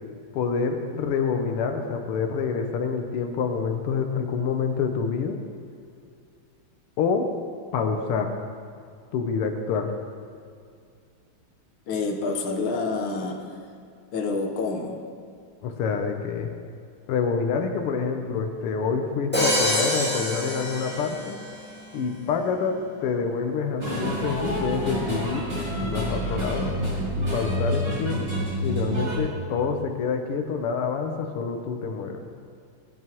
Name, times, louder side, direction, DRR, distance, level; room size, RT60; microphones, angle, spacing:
voice 1, 0.3-5.4 7.0-7.3 7.7-8.3 9.1-9.9 15.6-16.5 17.1-21.4 21.9-25.5 25.8-28.2 28.6-32.2, left 5 dB, 90° left, 4 dB, 1.8 m, -27 dB
voice 2, 11.9-13.5 14.1-15.0, left 3 dB, 65° left, 1 dB, 1.8 m, -28 dB
Crash cymbal, 19.3-21.5, left 1 dB, 5° left, 1.5 m, -26 dB
sound 1, 23.8-29.2, equal, 25° right, 3.1 m, -28 dB
17.5 x 11.0 x 3.0 m, 2.3 s
omnidirectional pair, 2.4 m